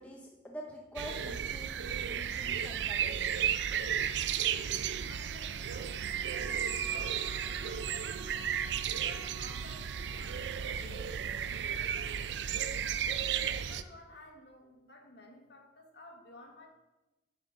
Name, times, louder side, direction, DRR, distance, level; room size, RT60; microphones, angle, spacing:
voice 1, 0.0-3.4, equal, 10° left, -1 dB, 0.7 m, -46 dB
sound 1, 1.0-13.8, right 8 dB, 85° right, 0.4 m, -34 dB
voice 2, 5.0-8.4 8.9-13.0 13.5-16.7, left 1 dB, 70° left, 1 dB, 1.5 m, -54 dB
Bowed string instrument, 5.9-10.7, right 3 dB, 30° right, 0.7 m, -50 dB
7.8 x 4.0 x 6.0 m, 1.0 s
head